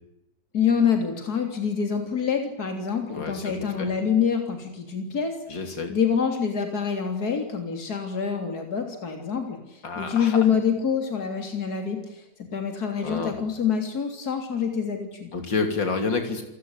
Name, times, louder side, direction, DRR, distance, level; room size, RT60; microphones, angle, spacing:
voice 1, 0.5-5.4 5.9-15.3, left 7 dB, 55° left, 4 dB, 3.8 m, -26 dB
voice 2, 3.1-3.9 5.5-5.9 9.8-10.4 13.0-13.4 15.3-16.4, left 4 dB, 85° left, 5 dB, 3.8 m, -29 dB
29.5 x 18.0 x 9.8 m, 0.91 s
omnidirectional pair, 2.0 m